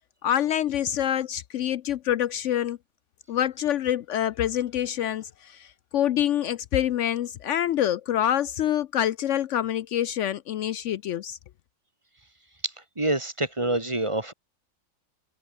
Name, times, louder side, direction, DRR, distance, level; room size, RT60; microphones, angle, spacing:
voice 1, 0.2-2.8 3.3-11.4, left 11 dB, 70° left, 0.9 m, -26 dB
voice 2, 12.6-14.3, right 2 dB, 20° right, 1.9 m, -27 dB
omnidirectional pair, 1.4 m